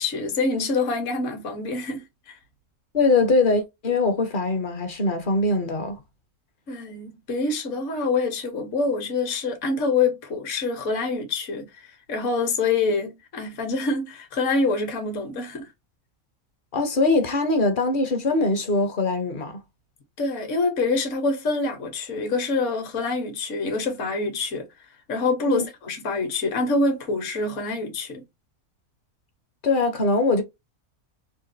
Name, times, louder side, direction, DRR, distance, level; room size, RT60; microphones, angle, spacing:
voice 1, 0.0-2.3 6.7-15.7 20.2-24.7 25.1-28.2, left 3 dB, 60° left, 1.2 m, -26 dB
voice 2, 2.9-6.0 16.7-19.6 25.4-25.6 29.6-30.4, left 3 dB, 45° left, 0.8 m, -22 dB
3.7 x 2.3 x 2.6 m
omnidirectional pair, 1.5 m